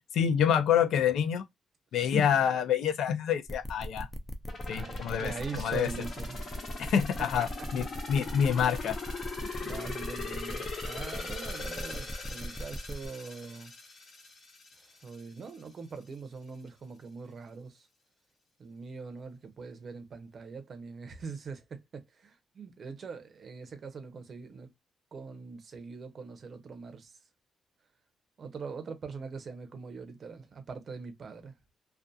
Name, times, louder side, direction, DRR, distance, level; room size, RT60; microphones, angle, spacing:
voice 1, 0.1-1.4 1.9-4.1 4.7-5.9 6.8-9.0, left 8 dB, 80° left, 0.4 m, -27 dB
sound 1, 3.5-13.1, equal, 10° left, 0.5 m, -39 dB
sound 2, 4.5-15.2 15.6-15.7, left 3 dB, 50° left, 1.0 m, -41 dB
voice 2, 4.7-6.5 7.2-7.5 7.9-8.2 9.3-13.7 14.8-17.9 18.6-24.7 25.1-27.2 28.4-31.5, right 4 dB, 45° right, 0.6 m, -42 dB
2.6 x 2.3 x 2.3 m
cardioid pair, 130°, 0 cm